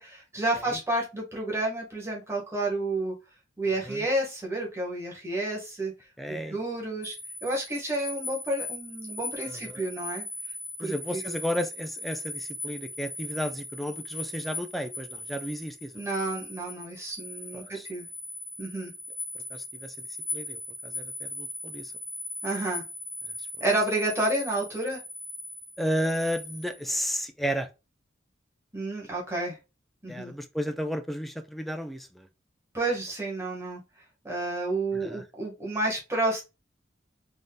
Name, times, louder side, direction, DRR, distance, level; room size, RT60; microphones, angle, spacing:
voice 1, 0.0-3.1 3.6-5.9 6.3-7.1 7.4-10.2 10.8-11.4 15.9-18.1 18.6-18.9 22.4-22.8 23.6-25.0 28.7-29.6 30.0-30.3 32.7-33.8 34.2-36.4, right 2 dB, 15° right, 1.4 m, -30 dB
voice 2, 6.2-6.6 9.4-9.8 10.8-16.0 17.5-17.9 19.5-19.9 20.3-21.9 25.8-27.7 30.1-32.3 34.9-35.3, equal, ahead, 0.4 m, -33 dB
sound 1, 7.0-26.9, left 2 dB, 35° left, 1.0 m, -39 dB
3.8 x 3.8 x 2.2 m
head